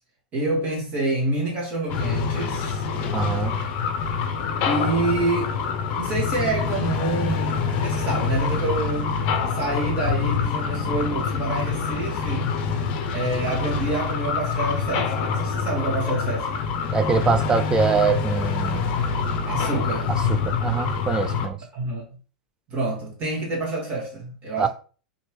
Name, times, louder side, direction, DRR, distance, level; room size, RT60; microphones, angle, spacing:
voice 1, 0.3-2.8 4.6-5.5 5.9-9.1 9.5-12.6 13.1-16.6 19.5-20.1 21.7-22.0 22.7-24.7, right 2 dB, 35° right, 1.5 m, -27 dB
sound 1, 1.9-21.5, left 5 dB, 40° left, 0.6 m, -26 dB
voice 2, 3.1-3.5 16.9-18.9 20.1-21.6 24.6-24.7, right 5 dB, 15° right, 0.4 m, -24 dB
4.3 x 2.8 x 3.1 m
figure-of-eight pair, 90°, 5 cm